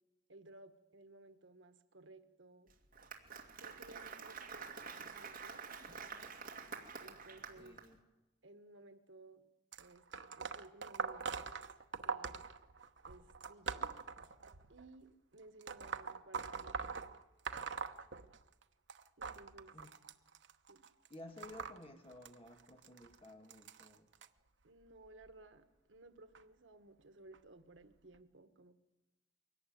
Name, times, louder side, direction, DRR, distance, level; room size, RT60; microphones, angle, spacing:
voice 1, 0.3-2.7 3.6-5.6 7.0-7.8 8.4-9.4 9.8-10.0 10.3-11.3 12.0-12.4 13.0-13.9 14.7-17.0 19.2-19.8 20.7-20.8 24.6-28.7, right 2 dB, 90° right, 9 dB, 1.4 m, -58 dB
Applause, 2.7-7.9, right 5 dB, 50° right, 2.4 m, -48 dB
voice 2, 7.6-8.0 19.7-19.9 21.1-24.1, left 1 dB, 30° left, 5 dB, 1.8 m, -54 dB
sound 1, 9.7-14.8 15.6-18.6 18.9-24.3 25.0-25.3 26.3-26.4 27.3-27.4 28.1-28.2, right 5 dB, 75° right, 1.0 m, -43 dB
23.0 x 18.5 x 9.3 m, 1.1 s
head